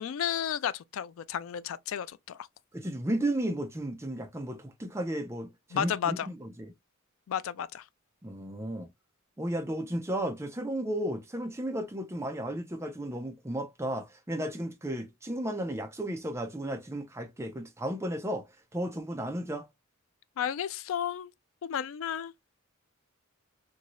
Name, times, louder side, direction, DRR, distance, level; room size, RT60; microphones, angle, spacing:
voice 1, 0.0-2.5 5.7-6.3 7.3-7.8 20.4-21.3 21.6-22.3, left 9 dB, 65° left, 0.3 m, -32 dB
voice 2, 2.7-6.7 8.2-8.9 9.4-18.4 18.7-19.7, right 1 dB, 15° right, 0.5 m, -34 dB
2.7 x 2.7 x 3.0 m
head